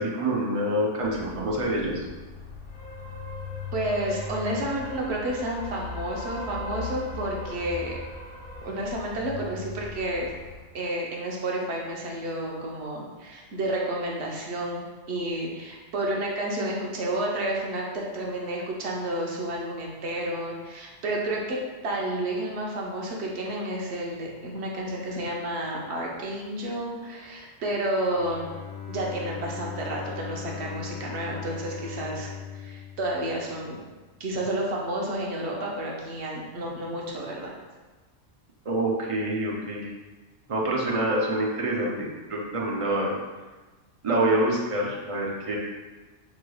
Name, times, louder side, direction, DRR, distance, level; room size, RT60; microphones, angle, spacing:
voice 1, 0.0-2.0 38.7-39.9 40.5-43.1 44.0-45.6, right 1 dB, 45° right, -3 dB, 0.4 m, -26 dB
sound 1, 1.0-10.6, left 2 dB, 45° left, 1.8 m, -38 dB
voice 2, 3.7-7.9 8.6-10.3 10.7-28.5 28.9-33.8 34.2-37.5, right 1 dB, 60° right, -2 dB, 1.0 m, -31 dB
Bowed string instrument, 28.1-34.0, left 7 dB, 65° left, 0.8 m, -39 dB
4.8 x 3.1 x 2.3 m, 1.2 s
omnidirectional pair, 1.3 m